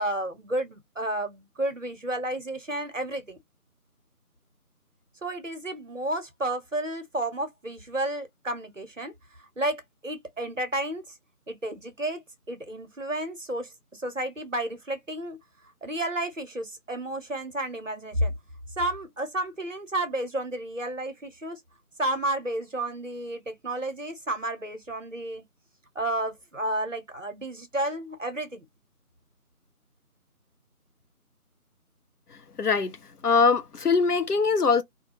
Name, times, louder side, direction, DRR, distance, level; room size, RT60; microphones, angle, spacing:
voice 1, 0.0-3.4 5.2-9.1 9.6-11.1 11.5-15.4 15.8-18.3 18.8-21.6 22.0-25.4 26.0-28.6, right 1 dB, 55° right, 0.7 m, -31 dB
voice 2, 32.6-33.0 33.2-34.8, left 5 dB, 80° left, 0.7 m, -22 dB
2.4 x 2.1 x 2.9 m
figure-of-eight pair, 175°, 45 cm